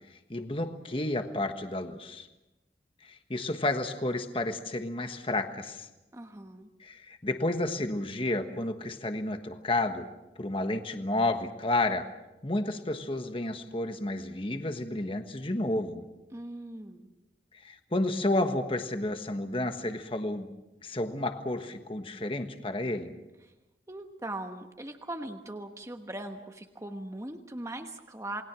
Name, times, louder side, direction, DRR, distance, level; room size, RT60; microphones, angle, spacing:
voice 1, 0.3-2.3 3.0-5.9 6.8-10.1 10.4-12.1 12.4-16.1 17.5-20.5 20.8-23.1, left 2 dB, 30° left, 7 dB, 1.4 m, -31 dB
voice 2, 6.1-6.7 16.3-17.1 23.9-28.4, right 1 dB, 15° right, 5 dB, 1.2 m, -40 dB
28.5 x 20.5 x 6.2 m, 0.99 s
head